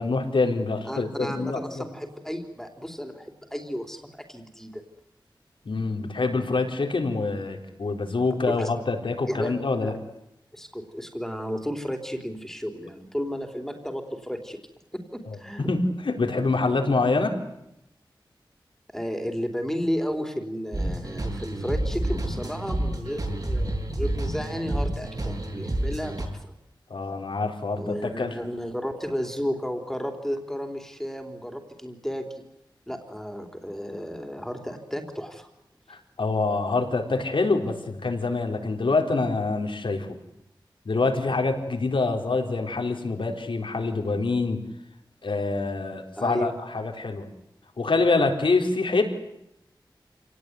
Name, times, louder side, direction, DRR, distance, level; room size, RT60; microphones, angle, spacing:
voice 1, 0.0-1.8 5.6-9.9 15.3-15.4 15.7-17.4 26.9-28.4 35.9-40.2 40.9-44.6 45.2-47.3 47.8-49.0, left 3 dB, 80° left, 4 dB, 4.1 m, -25 dB
voice 2, 0.9-4.8 8.5-8.7 9.3-9.5 9.8-9.9 10.5-14.6 14.9-15.7 18.9-26.3 27.8-32.4 32.9-35.5 46.2-46.6, equal, 5° left, 5 dB, 3.7 m, -33 dB
sound 1, 20.7-26.3, right 1 dB, 50° right, 7.3 m, -29 dB
28.0 x 19.0 x 9.6 m, 0.84 s
wide cardioid pair, 80°, 8 cm